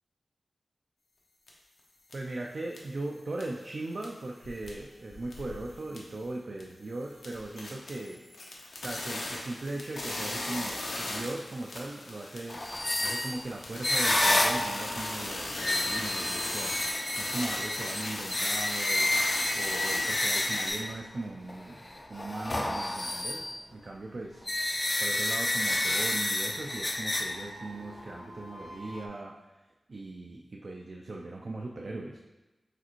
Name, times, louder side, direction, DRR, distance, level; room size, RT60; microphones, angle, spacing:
sound 1, 1.5-1.6 2.1-2.2 2.7-3.0 3.3-3.6 3.9-4.8 5.1-6.2 6.6-6.7 7.0-20.7, left 1 dB, 85° left, 0.7 m, -38 dB
voice 1, 2.1-8.2 8.8-12.6 13.0-21.8 22.1-24.5 25.0-29.3 29.9-32.2, right 2 dB, 60° right, 0 dB, 0.3 m, -39 dB
sound 2, 12.5-21.0 21.3-23.6 24.4-29.1, left 1 dB, 30° left, 0.3 m, -30 dB
4.8 x 3.3 x 3.0 m, 1.1 s
wide cardioid pair, 70°, 0 cm